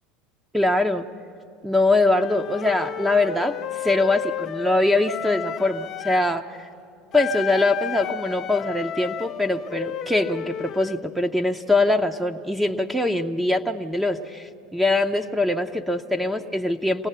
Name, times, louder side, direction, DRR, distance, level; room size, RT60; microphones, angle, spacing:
voice 1, 0.5-1.1 1.6-3.6 3.8-6.4 7.1-17.1, left 2 dB, 5° right, 5 dB, 0.9 m, -22 dB
Wind instrument woodwind instrument, 2.1-6.3 7.1-11.0, left 11 dB, 45° left, 0.6 m, -32 dB
26.0 x 18.0 x 6.8 m, 2.6 s
hypercardioid pair, 80°, 0 cm